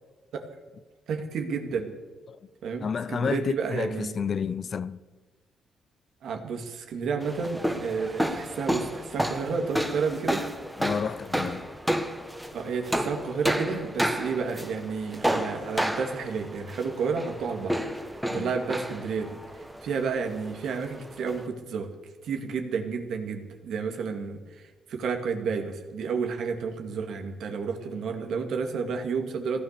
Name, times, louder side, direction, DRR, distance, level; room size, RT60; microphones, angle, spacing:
voice 1, 1.1-1.9 2.6-4.2 6.2-10.5 12.5-17.8 18.3-21.9 22.2-29.6, right 5 dB, 70° right, 2.3 m, -31 dB
voice 2, 2.8-5.0 10.8-11.7 18.3-18.5, left 6 dB, 45° left, 0.6 m, -30 dB
sound 1, 7.2-21.5, equal, 5° right, 1.7 m, -31 dB
16.5 x 12.0 x 6.8 m
cardioid pair, 90°, 0 cm